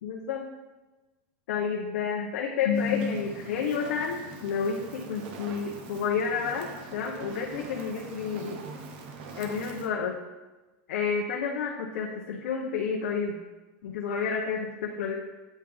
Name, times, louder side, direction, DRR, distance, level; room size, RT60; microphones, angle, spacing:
voice 1, 0.0-0.4 1.5-8.6 9.4-10.2 10.9-13.4 13.8-15.1, left 6 dB, 80° left, -1 dB, 0.7 m, -30 dB
Fire, 2.7-9.9, right 4 dB, 50° right, 0.7 m, -43 dB
8.3 x 3.4 x 3.3 m, 1.2 s
supercardioid pair, 175°, 7 cm